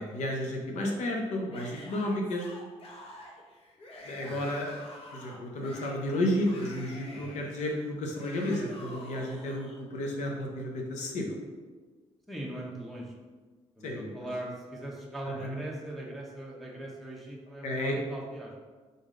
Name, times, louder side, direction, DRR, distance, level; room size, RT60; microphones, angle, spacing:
voice 1, 0.0-2.5 4.0-4.8 5.1-11.4 13.8-14.1 15.3-15.6 17.6-18.0, left 1 dB, 80° left, 1 dB, 0.8 m, -32 dB
Yell / Screaming, 1.5-9.8, left 1 dB, 55° left, 1.0 m, -48 dB
voice 2, 12.3-13.1 13.8-18.6, right 1 dB, ahead, -3 dB, 0.7 m, -40 dB
3.9 x 3.7 x 3.7 m, 1.4 s
cardioid pair, 100°, 12 cm